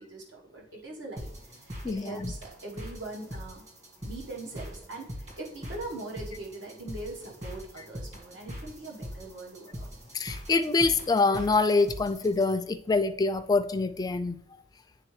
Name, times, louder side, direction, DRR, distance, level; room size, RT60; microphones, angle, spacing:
voice 1, 0.0-3.6 4.0-9.9, right 2 dB, 75° right, -2 dB, 1.3 m, -41 dB
sound 1, 1.2-12.5, equal, 40° right, 1.5 m, -42 dB
voice 2, 1.8-2.3 10.1-14.4, left 3 dB, 20° left, 10 dB, 0.3 m, -25 dB
9.9 x 3.6 x 3.1 m, 0.68 s
head